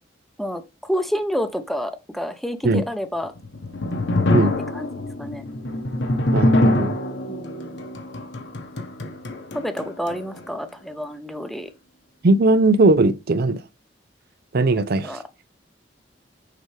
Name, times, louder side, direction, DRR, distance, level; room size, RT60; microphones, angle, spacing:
voice 1, 0.4-3.3 4.7-5.4 7.3-7.8 9.5-11.7 14.7-15.5, equal, ahead, 0.7 m, -29 dB
sound 1, 3.2-10.5, left 1 dB, 65° left, 1.1 m, -24 dB
voice 2, 6.3-7.0 12.2-13.6 14.5-15.1, right 2 dB, 55° right, 0.6 m, -18 dB
6.7 x 4.6 x 3.3 m
head